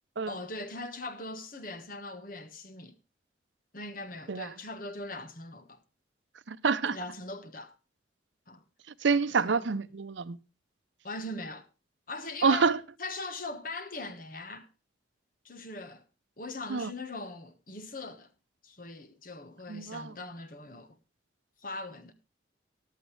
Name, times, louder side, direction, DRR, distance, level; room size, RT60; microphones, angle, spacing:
voice 1, 0.3-3.0 3.7-5.8 6.9-7.7 8.5-8.6 9.3-9.6 11.0-11.7 12.1-12.7 13.0-14.7 15.4-16.0 16.4-18.3 18.6-21.0 21.6-22.1, left 2 dB, 45° left, 1.3 m, -40 dB
voice 2, 6.5-7.0 9.0-10.4 12.4-12.8 16.7-16.9 19.7-20.2, right 5 dB, 75° right, 0.6 m, -27 dB
14.0 x 11.5 x 3.2 m
head